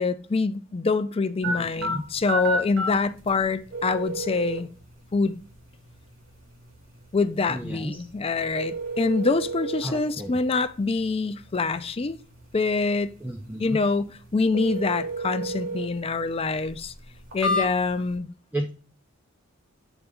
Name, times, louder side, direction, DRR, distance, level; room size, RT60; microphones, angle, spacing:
voice 1, 0.0-4.7 5.1-5.4 7.1-12.2 12.5-13.2 13.6-16.9 17.3-18.3, left 4 dB, 30° left, 0.4 m, -25 dB
voice 2, 1.4-2.0 7.5-8.1 9.8-10.4 13.2-13.8 18.5-18.7, right 1 dB, 10° right, 0.7 m, -33 dB
sound 1, 1.4-18.1, right 1 dB, 85° right, 2.9 m, -34 dB
8.1 x 4.0 x 3.5 m
head